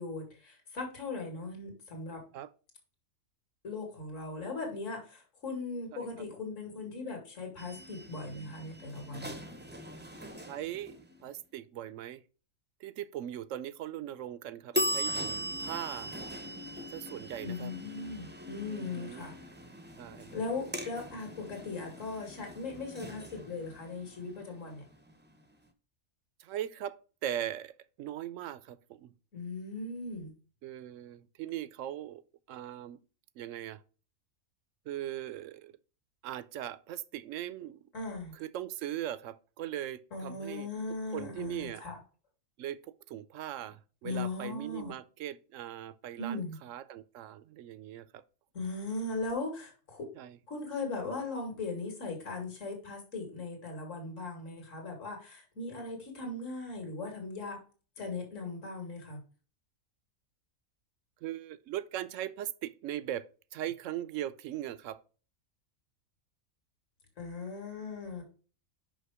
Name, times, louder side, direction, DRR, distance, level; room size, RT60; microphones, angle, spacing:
voice 1, 0.0-2.2 3.6-9.3 17.4-19.3 20.3-24.8 29.3-30.3 37.9-38.3 40.1-42.0 44.0-44.9 46.2-46.6 48.5-50.1 50.5-57.6 58.0-59.2 67.2-68.2, left 3 dB, 60° left, 2.4 m, -38 dB
sound 1, 7.6-11.3 14.7-25.4, equal, 10° right, 0.5 m, -40 dB
voice 2, 10.5-12.2 12.8-16.1 16.9-17.7 18.7-19.2 20.0-20.3 26.4-27.0 27.2-27.7 28.0-29.1 30.6-32.2 32.5-33.0 33.4-33.8 34.9-35.7 36.2-37.8 38.3-40.7 41.1-41.8 42.6-42.8 43.1-48.2 50.2-50.4 61.2-63.2 63.5-65.0, right 12 dB, 70° right, 0.9 m, -39 dB
5.7 x 5.7 x 4.7 m
omnidirectional pair, 1.5 m